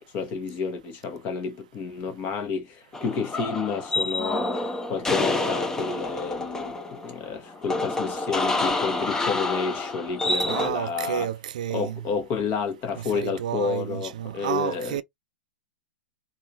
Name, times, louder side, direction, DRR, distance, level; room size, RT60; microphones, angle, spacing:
voice 1, 0.1-6.8 7.0-11.3 11.7-15.0, left 5 dB, 35° left, 1.2 m, -30 dB
sound 1, 2.9-10.7, left 2 dB, 10° left, 0.7 m, -28 dB
voice 2, 10.5-12.1 12.9-15.0, right 10 dB, 65° right, 0.4 m, -30 dB
3.5 x 2.6 x 2.9 m
figure-of-eight pair, 105°, 5 cm